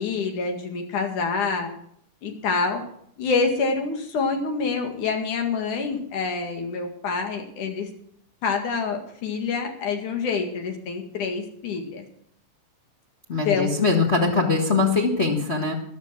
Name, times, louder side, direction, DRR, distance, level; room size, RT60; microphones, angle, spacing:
voice 1, 0.0-1.7 2.2-2.8 3.2-7.9 8.4-12.1 13.5-13.7, left 4 dB, 85° left, 4 dB, 3.5 m, -26 dB
voice 2, 13.3-15.8, left 3 dB, 30° left, 2 dB, 1.4 m, -22 dB
13.0 x 12.5 x 6.0 m, 0.67 s
omnidirectional pair, 3.4 m